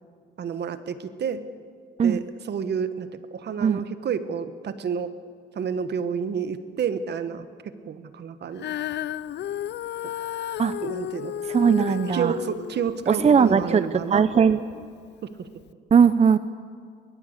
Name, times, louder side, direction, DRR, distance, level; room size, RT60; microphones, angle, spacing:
voice 1, 0.4-1.4 2.0-5.1 5.5-8.7 10.0-10.1 10.8-11.3 11.7-14.4 15.2-15.5, right 7 dB, 65° right, 11 dB, 1.4 m, -30 dB
Female singing, 8.6-14.9 15.6-15.7, left 11 dB, 70° left, 0.6 m, -34 dB
voice 2, 11.5-12.3 13.1-14.6 15.9-16.4, right 6 dB, 35° right, 14 dB, 0.6 m, -19 dB
22.5 x 20.5 x 8.2 m, 2.1 s
cardioid pair, 95°, 19 cm